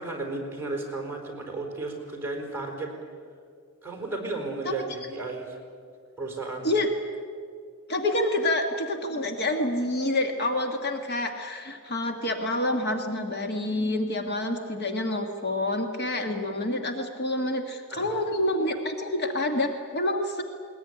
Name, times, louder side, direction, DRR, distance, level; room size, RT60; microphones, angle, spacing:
voice 1, 0.0-2.9 3.8-5.5 6.2-6.7 17.9-18.2, right 3 dB, 10° right, 1 dB, 4.5 m, -34 dB
voice 2, 7.9-20.4, left 1 dB, 50° left, 4 dB, 1.7 m, -27 dB
20.5 x 20.0 x 9.9 m, 2.1 s
head